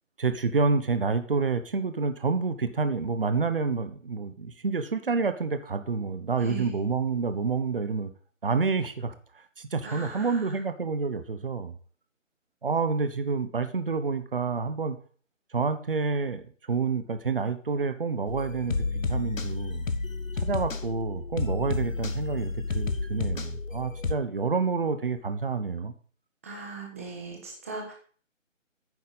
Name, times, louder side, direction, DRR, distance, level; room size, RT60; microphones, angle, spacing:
voice 1, 0.2-8.1 8.4-11.8 12.6-15.0 15.5-18.8 19.1-19.8 20.3-25.9, right 4 dB, 45° right, 10 dB, 1.2 m, -28 dB
voice 2, 6.4-6.8 9.8-10.6 26.4-27.9, right 4 dB, 10° right, -1 dB, 1.3 m, -39 dB
sound 1, 18.3-24.1, left 3 dB, 80° left, 1.5 m, -31 dB
9.5 x 6.0 x 7.3 m, 0.43 s
figure-of-eight pair, 170°, 39 cm